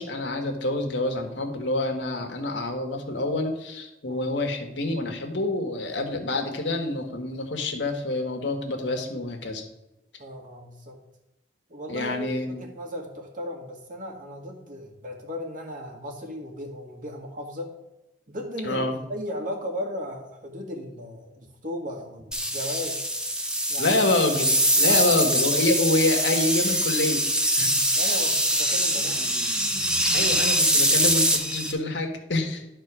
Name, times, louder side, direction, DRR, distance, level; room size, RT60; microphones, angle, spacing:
voice 1, 0.0-9.6 11.9-12.6 18.6-19.0 23.8-24.5 24.7-27.2 27.6-27.8 28.9-29.0 30.1-32.7, left 2 dB, 90° left, 3 dB, 1.6 m, -27 dB
voice 2, 10.2-11.0 11.7-17.7 18.3-18.8 19.1-23.0 23.7-24.0 24.8-25.1 27.9-29.2, equal, 50° right, 1 dB, 1.9 m, -36 dB
sound 1, 22.3-31.7, equal, 5° right, 0.9 m, -23 dB
11.5 x 4.4 x 6.1 m, 0.94 s
head